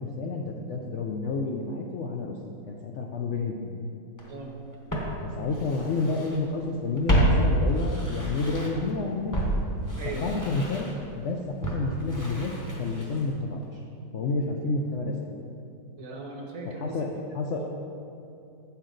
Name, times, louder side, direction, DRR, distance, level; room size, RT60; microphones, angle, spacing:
voice 1, 0.2-3.8 5.2-9.6 10.0-12.5 12.8-13.8 14.1-15.3 16.6-17.7, left 3 dB, 75° left, 1 dB, 0.6 m, -30 dB
Walk footsteps, 4.2-4.3 4.9-6.4 6.7-8.9 9.3-13.4 13.6-13.7, right 1 dB, 15° left, 0.8 m, -28 dB
voice 2, 10.0-10.3 16.0-17.0 17.5-17.7, right 3 dB, 60° right, 0 dB, 1.3 m, -38 dB
8.5 x 7.1 x 3.8 m, 2.6 s
omnidirectional pair, 1.9 m